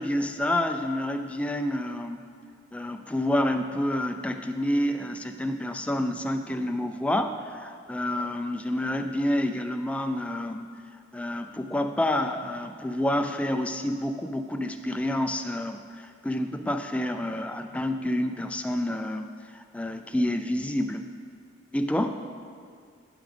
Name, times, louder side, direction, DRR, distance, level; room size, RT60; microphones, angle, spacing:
voice 1, 0.0-2.3 2.7-10.7 11.1-19.3 19.5-21.0 21.7-22.3, left 1 dB, 5° left, 6 dB, 0.3 m, -28 dB
13.0 x 6.1 x 3.3 m, 2.2 s
head